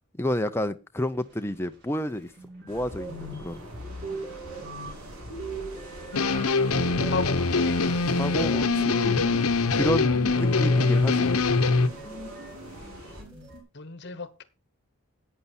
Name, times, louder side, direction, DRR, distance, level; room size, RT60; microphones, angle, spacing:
voice 1, 0.2-2.3 2.7-3.7 8.2-9.3 9.7-11.3, equal, 10° left, 0.5 m, -30 dB
sound 1, 2.0-2.1 2.4-13.6, right 2 dB, 50° right, 5.2 m, -40 dB
sound 2, 2.7-13.2, equal, 75° right, 7.5 m, -44 dB
sound 3, 6.1-11.9, left 3 dB, 80° left, 0.9 m, -23 dB
voice 2, 7.0-7.8 12.7-12.9 13.7-14.4, left 4 dB, 50° left, 1.0 m, -34 dB
11.0 x 9.4 x 4.3 m
head